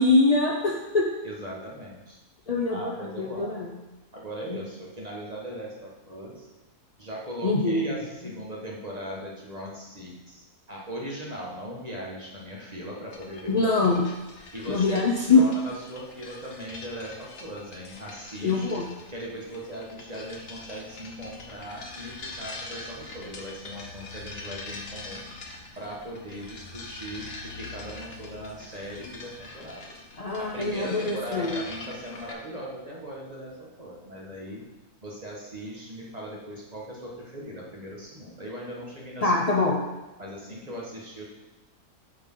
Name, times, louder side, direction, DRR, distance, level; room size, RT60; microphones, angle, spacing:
voice 1, 0.0-1.0 2.5-3.7 7.4-7.9 13.5-14.1 14.7-15.5 18.4-18.8 30.2-31.6 39.2-39.8, left 3 dB, 80° left, -1 dB, 0.3 m, -23 dB
voice 2, 1.2-2.2 2.7-3.5 4.1-6.5 7.0-13.6 14.5-15.0 15.3-18.8 19.1-25.3 25.8-29.9 30.4-34.6 35.0-39.3 40.2-41.2, equal, 25° right, -3 dB, 1.5 m, -39 dB
sound 1, 13.1-32.3, left 3 dB, 45° left, 1.0 m, -43 dB
8.4 x 6.1 x 3.8 m, 1.1 s
omnidirectional pair, 1.7 m